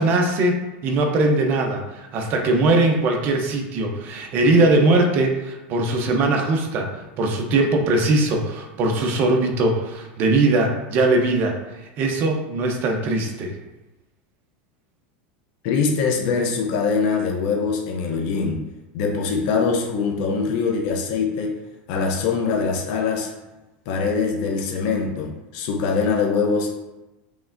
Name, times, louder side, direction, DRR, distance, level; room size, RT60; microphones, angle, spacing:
voice 1, 0.0-11.6 12.0-13.6, right 2 dB, 40° right, 2 dB, 0.7 m, -20 dB
voice 2, 15.6-18.6 18.9-21.5 21.9-23.3 23.9-26.7, left 5 dB, 55° left, 0 dB, 0.6 m, -23 dB
4.8 x 3.2 x 2.6 m, 1.0 s
supercardioid pair, 145°, 5 cm